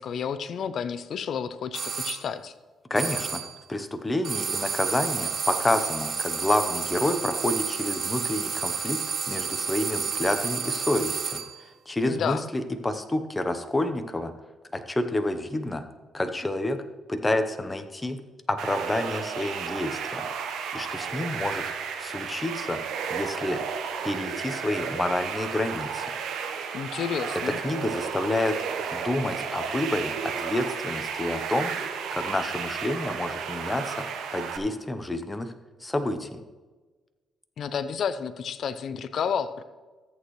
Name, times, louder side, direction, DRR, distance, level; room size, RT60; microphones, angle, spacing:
voice 1, 0.0-2.5 12.0-12.4 26.7-27.6 37.6-39.6, left 7 dB, 65° left, 13 dB, 0.6 m, -31 dB
sound 1, 1.7-2.2 3.0-3.6 4.2-11.6, right 6 dB, 50° right, 1.1 m, -30 dB
voice 2, 2.9-3.4 3.7-9.0 9.3-11.4 11.9-14.3 14.7-15.8 16.1-16.8 17.1-18.2 18.5-20.3 20.7-21.7 22.0-22.8 23.1-23.6 24.0-26.1 27.6-28.6 28.9-31.7 32.1-34.1 34.3-35.5 35.8-36.4, left 1 dB, 15° left, 8 dB, 0.9 m, -28 dB
sound 2, 18.6-34.6, right 6 dB, 85° right, 1.1 m, -33 dB
14.0 x 8.3 x 3.2 m, 1.3 s
cardioid pair, 90°, 0 cm